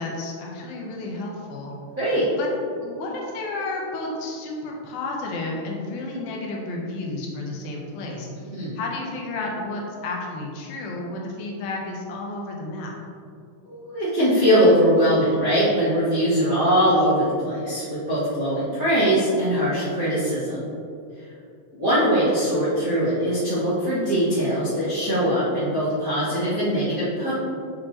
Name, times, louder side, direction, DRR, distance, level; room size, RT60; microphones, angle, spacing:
voice 1, 0.0-1.7 2.4-2.5 2.8-12.9, left 2 dB, 80° left, -1 dB, 2.7 m, -32 dB
voice 2, 13.6-20.6 21.8-27.3, equal, 45° right, -13 dB, 1.1 m, -21 dB
6.6 x 6.3 x 2.9 m, 2.5 s
omnidirectional pair, 4.2 m